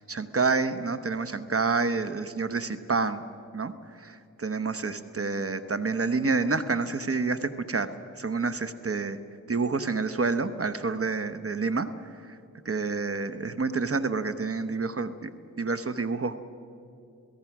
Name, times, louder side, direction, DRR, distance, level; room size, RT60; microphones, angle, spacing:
voice 1, 0.0-3.2 3.5-3.7 4.0-7.9 8.2-9.2 9.5-11.9 12.6-15.3 15.6-16.4, right 4 dB, 40° right, 11 dB, 1.0 m, -28 dB
28.5 x 17.5 x 6.1 m, 2.5 s
cardioid pair, 60°, 34 cm